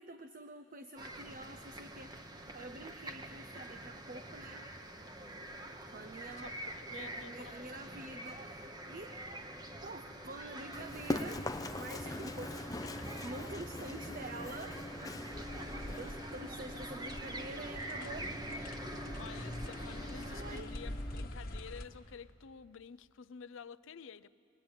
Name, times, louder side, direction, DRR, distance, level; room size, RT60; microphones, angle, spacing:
voice 1, 0.0-2.1 2.5-4.7 5.9-6.5 6.9-9.2 9.8-11.4 11.7-12.8 13.2-14.8 15.8-18.3 19.6-19.7 20.3-20.7, right 2 dB, 40° right, 9 dB, 0.6 m, -47 dB
sound 1, 1.0-20.6, right 1 dB, 20° right, 1.0 m, -46 dB
voice 2, 6.4-7.7 12.1-12.2 12.7-13.0 19.2-24.3, left 6 dB, 70° left, 17 dB, 0.5 m, -51 dB
Run, 10.7-21.3, left 1 dB, 15° left, 0.6 m, -43 dB
sound 2, 15.3-21.9, left 1 dB, 45° left, 1.3 m, -45 dB
22.0 x 20.5 x 8.9 m, 2.6 s
head